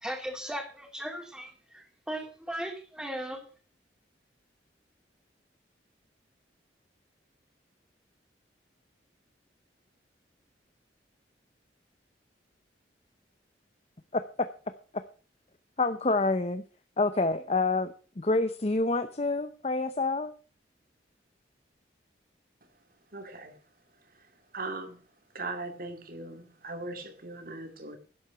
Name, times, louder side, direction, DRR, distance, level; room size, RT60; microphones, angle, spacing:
voice 1, 0.0-3.4, right 1 dB, 5° right, 2.7 m, -37 dB
voice 2, 15.8-16.6 17.0-20.3, left 3 dB, 35° left, 0.7 m, -27 dB
voice 3, 23.1-23.6 24.2-24.3 24.5-25.0 25.3-28.0, right 2 dB, 50° right, 2.3 m, -39 dB
11.5 x 8.0 x 6.8 m
head